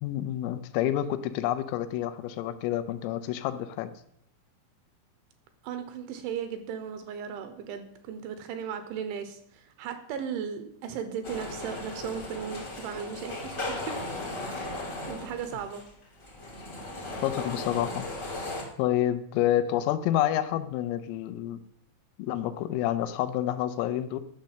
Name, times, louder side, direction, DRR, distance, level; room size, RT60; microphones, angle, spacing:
voice 1, 0.0-3.9 17.2-18.1 18.8-21.6 22.2-24.2, left 12 dB, 85° left, 11 dB, 3.3 m, -28 dB
voice 2, 5.6-14.0 14.4-14.8 15.0-15.9, right 7 dB, 75° right, 9 dB, 2.9 m, -36 dB
sound 1, 11.2-18.6, left 2 dB, 60° left, 0.8 m, -37 dB
11.5 x 6.5 x 7.4 m, 0.70 s
omnidirectional pair, 5.9 m